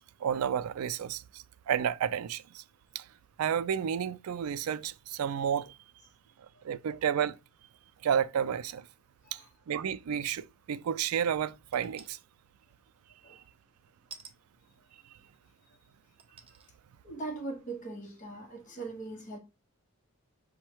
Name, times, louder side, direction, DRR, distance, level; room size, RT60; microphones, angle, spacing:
voice 1, 0.0-2.6 2.9-3.0 3.4-5.7 6.6-7.4 8.0-8.8 9.3-9.4 9.7-12.2, right 8 dB, 85° right, 0.3 m, -31 dB
sound 1, 11.7-12.2 14.1-14.4 15.3-15.4 16.2-16.7 17.2-17.3, right 5 dB, 25° right, 0.5 m, -49 dB
voice 2, 17.0-19.4, right 3 dB, 35° left, 1.0 m, -40 dB
5.4 x 2.2 x 4.5 m
head